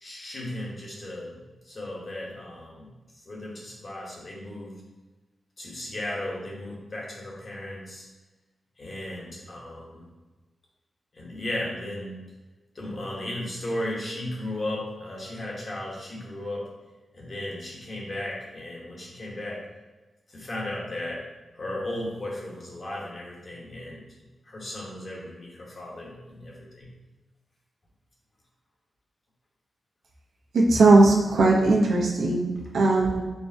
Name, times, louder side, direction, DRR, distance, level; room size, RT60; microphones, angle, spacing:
voice 1, 0.0-2.9 3.3-4.8 5.6-8.1 8.8-10.1 11.1-12.2 12.7-16.7 17.1-19.6 20.3-21.2 21.5-24.1 24.4-26.9, left 1 dB, 40° left, -4 dB, 1.2 m, -35 dB
voice 2, 30.5-33.2, right 2 dB, 90° right, -3 dB, 0.8 m, -19 dB
4.5 x 3.4 x 2.7 m, 1.2 s
wide cardioid pair, 110°, 0 cm